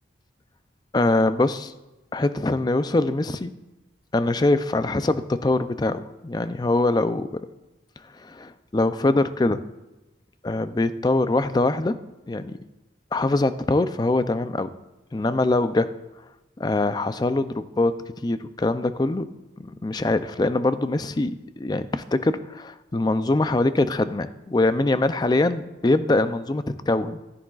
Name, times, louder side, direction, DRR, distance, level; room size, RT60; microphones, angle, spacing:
voice 1, 0.9-1.7 2.1-3.5 4.1-7.4 8.2-9.6 10.4-11.9 12.3-12.6 13.1-14.7 15.1-15.9 16.6-18.0 18.2-19.3 19.6-27.2, left 2 dB, 20° left, 12 dB, 0.4 m, -23 dB
14.0 x 10.0 x 2.4 m, 1.0 s
head